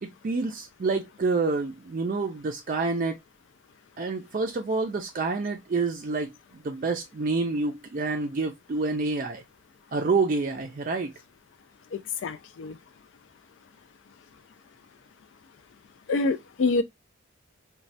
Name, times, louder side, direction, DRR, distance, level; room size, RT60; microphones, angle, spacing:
voice 1, 0.0-3.2 4.0-9.4 9.9-11.1, right 3 dB, 40° right, 0.4 m, -28 dB
voice 2, 12.2-12.7 16.1-16.8, left 3 dB, 65° left, 0.3 m, -26 dB
3.1 x 2.2 x 2.6 m
head